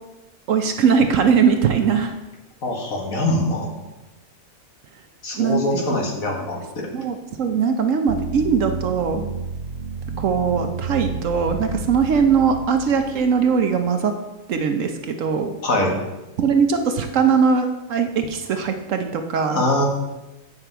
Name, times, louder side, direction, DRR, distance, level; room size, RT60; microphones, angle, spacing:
voice 1, 0.5-2.1 5.3-6.0 6.9-9.2 10.2-14.1 14.5-15.5 16.4-19.6, right 6 dB, 65° right, 6 dB, 1.0 m, -20 dB
voice 2, 2.6-3.7 5.2-6.9 15.6-15.9 19.5-19.8, left 1 dB, 65° left, 0 dB, 1.9 m, -23 dB
sound 1, 8.1-13.8, right 4 dB, 85° right, 0.5 m, -31 dB
8.8 x 5.9 x 4.5 m, 1.0 s
omnidirectional pair, 1.6 m